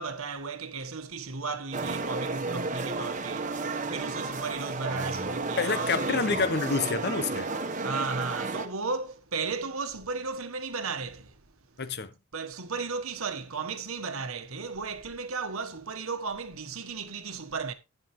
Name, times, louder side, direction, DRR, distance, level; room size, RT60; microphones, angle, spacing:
voice 1, 0.0-6.4 7.8-11.4 12.3-17.7, right 4 dB, 75° right, 1.4 m, -35 dB
sound 1, 1.7-8.7, right 3 dB, 35° right, 1.2 m, -32 dB
voice 2, 5.6-7.5 11.8-12.1, left 4 dB, 50° left, 1.0 m, -28 dB
11.5 x 10.5 x 3.2 m
head